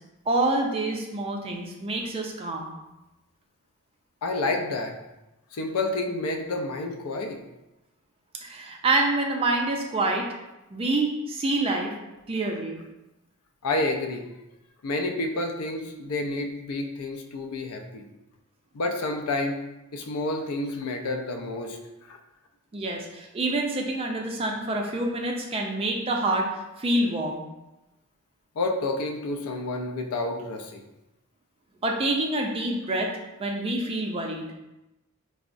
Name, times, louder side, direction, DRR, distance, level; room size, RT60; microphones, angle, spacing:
voice 1, 0.3-2.7 8.4-10.3 10.7-11.9 12.3-12.8 22.7-26.4 26.8-27.4 31.8-33.1 33.4-34.5, right 2 dB, 25° right, 1 dB, 0.4 m, -27 dB
voice 2, 4.2-4.9 5.5-7.4 13.6-14.2 14.8-18.0 18.7-19.6 19.9-21.8 22.1-22.2 28.6-30.8, left 2 dB, 80° left, 4 dB, 0.4 m, -29 dB
4.5 x 2.0 x 2.5 m, 0.98 s
head